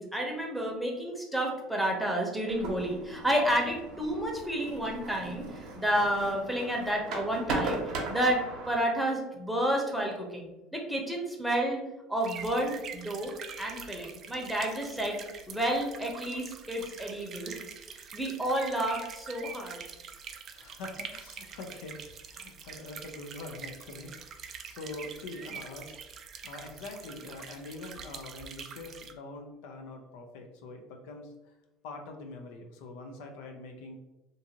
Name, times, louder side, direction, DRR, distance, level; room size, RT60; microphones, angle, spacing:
voice 1, 0.0-11.8 12.1-15.2 15.5-17.6 18.1-19.8, right 1 dB, ahead, -1 dB, 0.7 m, -30 dB
sound 1, 2.5-8.8, right 3 dB, 65° right, 0.7 m, -38 dB
sound 2, 12.2-29.1, right 6 dB, 45° right, 0.3 m, -45 dB
voice 2, 20.5-26.0 26.4-31.5 31.8-34.0, left 2 dB, 75° left, 4 dB, 0.4 m, -44 dB
2.5 x 2.5 x 2.8 m, 1.0 s
supercardioid pair, 90°, 0 cm